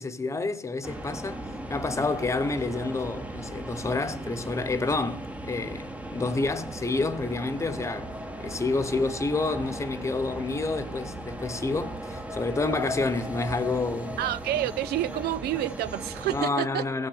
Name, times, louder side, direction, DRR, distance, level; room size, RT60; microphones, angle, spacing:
voice 1, 0.0-8.1 8.4-14.2 14.5-14.6 16.3-17.1, left 3 dB, 15° left, 1.0 m, -29 dB
sound 1, 0.8-16.4, right 1 dB, 10° right, 1.0 m, -37 dB
voice 2, 14.2-16.9, right 13 dB, 70° right, 0.5 m, -29 dB
16.5 x 7.2 x 5.6 m
cardioid pair, 110°, 17 cm